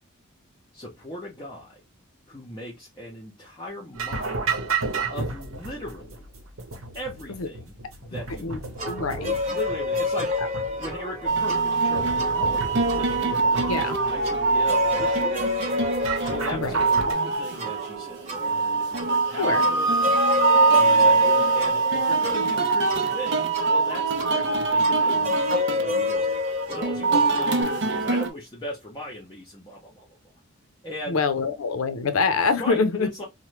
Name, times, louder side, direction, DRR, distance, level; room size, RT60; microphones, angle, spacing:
voice 1, 0.7-1.7 2.3-4.5 5.1-6.2 6.9-7.7 8.0-8.7 9.5-10.3 10.8-15.4 16.2-19.9 20.7-26.3 26.7-30.1 30.8-31.2 32.6-33.2, equal, 20° left, 0.6 m, -38 dB
sound 1, 3.9-17.1, right 4 dB, 75° right, 0.9 m, -33 dB
voice 2, 8.8-9.4 10.4-10.5 13.7-14.0 16.5-16.8 19.4-19.6 31.1-33.2, left 4 dB, 80° left, 0.5 m, -25 dB
sound 2, 8.8-27.6, left 3 dB, 30° right, 0.9 m, -30 dB
sound 3, 11.3-28.3, right 3 dB, 55° right, 0.5 m, -23 dB
2.9 x 2.1 x 3.1 m
head